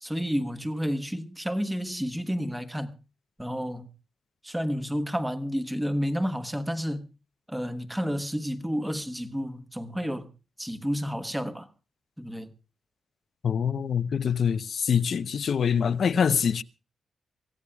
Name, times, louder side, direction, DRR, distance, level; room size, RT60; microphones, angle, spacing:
voice 1, 0.0-3.0 3.4-3.9 4.4-7.1 7.5-10.3 10.6-11.7 12.2-12.5, equal, 5° right, 1.2 m, -30 dB
voice 2, 13.4-16.6, left 7 dB, 55° left, 0.7 m, -25 dB
25.5 x 16.5 x 2.3 m
wide cardioid pair, 155°, 0 cm